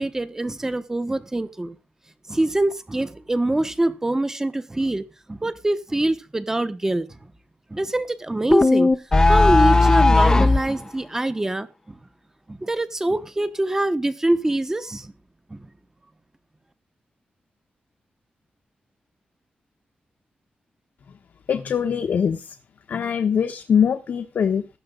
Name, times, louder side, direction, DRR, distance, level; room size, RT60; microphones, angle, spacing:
voice 1, 0.0-1.8 2.3-7.1 7.7-8.9 9.3-11.7 12.5-15.1 15.5-15.6, right 1 dB, 15° right, 1.1 m, -24 dB
sound 1, 8.5-10.7, left 3 dB, 20° left, 0.9 m, -15 dB
voice 2, 21.5-22.5 22.9-24.7, left 7 dB, 75° left, 1.2 m, -22 dB
15.5 x 11.5 x 3.9 m
wide cardioid pair, 145°, 3 cm